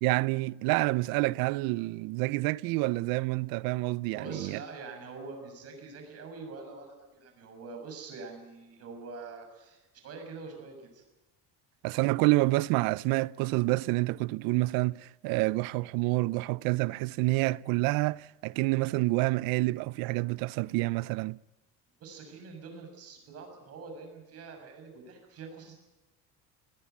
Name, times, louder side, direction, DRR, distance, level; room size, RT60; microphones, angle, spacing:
voice 1, 0.0-4.6 11.8-21.4, right 21 dB, 80° right, 0.6 m, -28 dB
voice 2, 4.1-11.0 22.0-25.7, right 4 dB, 45° right, 7.0 m, -45 dB
21.5 x 16.0 x 9.5 m
cardioid pair, 155°, 35 cm